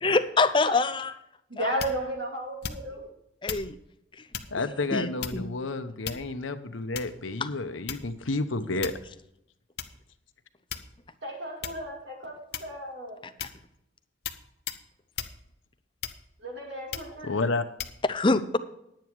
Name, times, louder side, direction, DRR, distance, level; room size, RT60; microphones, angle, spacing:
voice 1, 0.0-1.1 1.6-1.7 3.4-3.8 4.9-5.4 18.1-18.6, left 3 dB, 25° left, 11 dB, 0.6 m, -24 dB
voice 2, 1.5-3.1 11.2-13.2 16.4-17.4, right 1 dB, 60° right, 0 dB, 3.0 m, -34 dB
sound 1, 1.8-2.1 2.6-3.0 3.5-3.7 4.3-4.6 5.2-5.6 6.0-6.5 6.9-7.3 7.9-8.2 8.8-9.1 9.8-9.9 10.7-11.1 11.6-11.9 12.5-12.9 13.4-13.6 14.2-14.4 14.7-14.8 15.2-15.4 16.0-16.4 16.9-17.2 17.8-18.0, left 8 dB, 55° left, 0.8 m, -36 dB
voice 3, 4.5-8.9 17.2-17.6, left 3 dB, 85° left, 9 dB, 0.9 m, -30 dB
10.5 x 9.2 x 4.7 m, 0.80 s
head